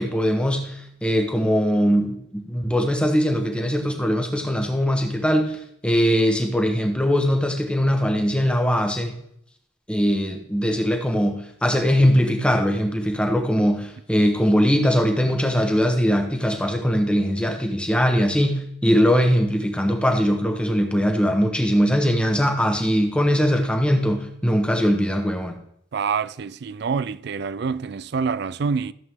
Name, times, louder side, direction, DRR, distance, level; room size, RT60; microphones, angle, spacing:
voice 1, 0.0-9.2 9.9-25.5, equal, 5° left, 1.1 m, -21 dB
voice 2, 25.9-28.9, right 5 dB, 55° right, 0.4 m, -26 dB
14.0 x 7.7 x 3.7 m
head